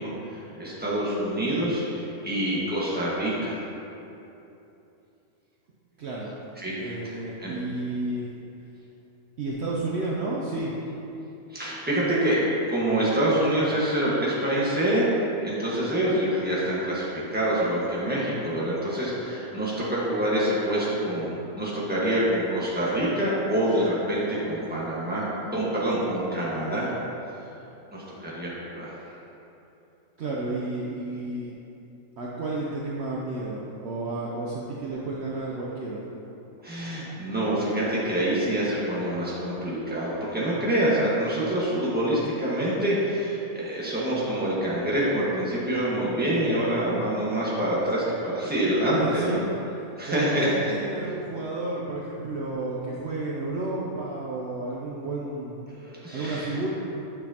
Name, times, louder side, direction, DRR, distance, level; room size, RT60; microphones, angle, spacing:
voice 1, 0.0-3.6 6.6-7.1 7.4-7.5 11.5-26.9 27.9-28.9 36.6-49.4 50.0-50.7 55.8-56.6, right 1 dB, 5° right, -8 dB, 1.4 m, -26 dB
voice 2, 6.0-6.3 6.8-8.3 9.4-10.7 30.2-31.6 32.2-36.0 48.9-49.4 50.1-55.6 56.1-56.7, right 2 dB, 60° right, -4 dB, 0.9 m, -31 dB
8.9 x 6.1 x 2.9 m, 2.8 s
omnidirectional pair, 1.4 m